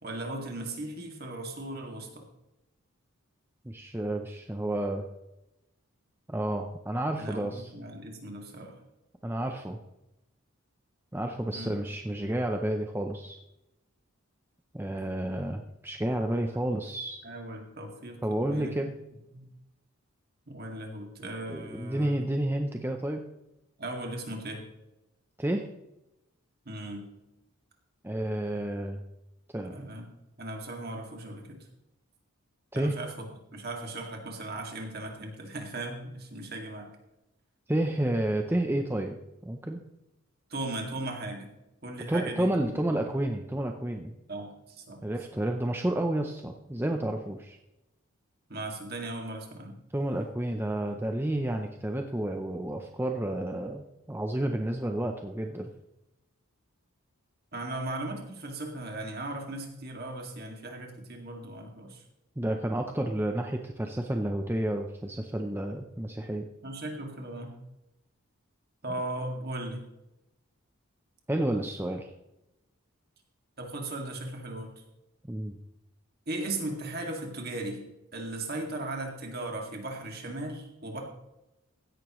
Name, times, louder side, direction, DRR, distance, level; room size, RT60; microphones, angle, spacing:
voice 1, 0.0-2.2 7.2-8.7 11.5-11.8 16.5-16.6 17.2-18.7 19.3-19.4 20.5-22.3 23.8-24.6 26.7-27.1 29.6-30.1 30.4-31.6 32.7-33.3 33.5-36.9 40.5-41.5 41.8-42.8 44.3-45.0 48.5-49.8 57.5-62.0 66.6-67.5 68.8-69.8 73.6-74.7 76.3-77.8 78.1-81.0, right 2 dB, 45° right, 2 dB, 2.2 m, -37 dB
voice 2, 3.6-5.0 6.3-7.7 9.2-9.8 11.1-13.4 14.7-17.2 18.2-18.9 21.5-23.3 25.4-25.7 28.0-29.0 29.5-29.9 32.7-33.0 37.7-39.2 39.4-39.8 42.1-44.1 45.0-47.6 49.9-55.7 62.4-66.4 71.3-72.1 75.3-75.6, right 1 dB, 10° right, 4 dB, 0.5 m, -30 dB
15.5 x 11.0 x 3.1 m, 0.93 s
head